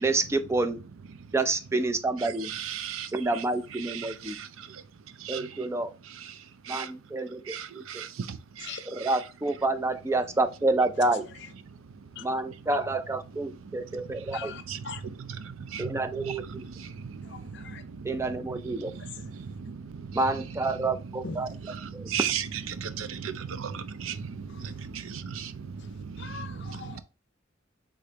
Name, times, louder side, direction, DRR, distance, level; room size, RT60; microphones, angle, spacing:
voice 1, 0.0-0.8 1.3-2.5 3.1-4.4 5.3-5.9 6.7-7.8 8.9-11.3 12.2-14.5 15.8-16.4 18.0-18.9 20.1-21.5 21.9-22.0, right 2 dB, 15° right, 0.3 m, -28 dB
voice 2, 2.2-3.1 3.3-3.4 3.9-4.0 5.2-5.4 6.7-6.9 7.5-7.7 8.0-8.1 9.1-9.2 14.7-14.8 15.7-15.8 16.3-16.4 21.7-24.1 24.9-25.5, right 8 dB, 80° right, 0.5 m, -34 dB
voice 3, 11.0-11.5 12.2-12.3 14.3-15.0 17.2-17.8 18.9-19.1 21.2-21.4 26.2-27.0, left 6 dB, 60° left, 0.5 m, -42 dB
5.1 x 3.6 x 2.8 m
head